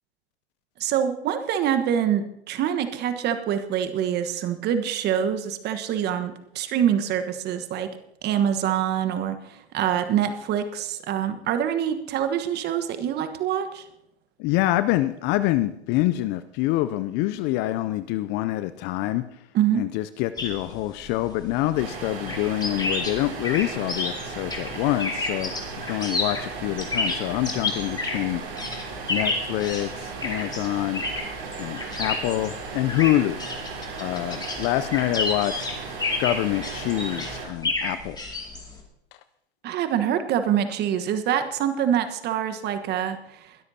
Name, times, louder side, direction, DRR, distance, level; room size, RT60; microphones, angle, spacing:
voice 1, 0.8-7.9 8.2-13.9 19.5-19.8 39.6-43.6, right 9 dB, 30° right, 9 dB, 1.3 m, -25 dB
voice 2, 14.4-19.2 19.7-25.5 25.9-28.4 29.1-31.0 31.6-33.4 34.0-35.7 36.2-38.2, left 15 dB, 30° left, 13 dB, 0.5 m, -26 dB
sound 1, 20.4-38.8, left 3 dB, 10° left, 2.4 m, -31 dB
sound 2, 21.8-37.5, right 5 dB, 50° right, 6.5 m, -36 dB
21.5 x 13.0 x 2.8 m, 0.76 s
hypercardioid pair, 105°, 33 cm